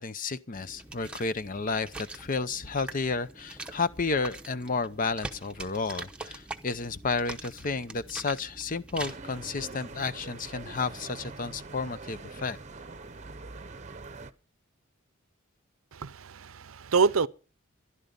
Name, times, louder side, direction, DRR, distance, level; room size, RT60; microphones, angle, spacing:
voice 1, 0.0-12.6, left 4 dB, 40° left, 0.6 m, -32 dB
sound 1, 0.5-9.2, right 2 dB, 5° right, 0.9 m, -43 dB
sound 2, 9.1-14.3, right 3 dB, 35° right, 0.8 m, -43 dB
voice 2, 15.9-17.3, right 5 dB, 70° right, 0.6 m, -26 dB
14.5 x 11.5 x 5.2 m
head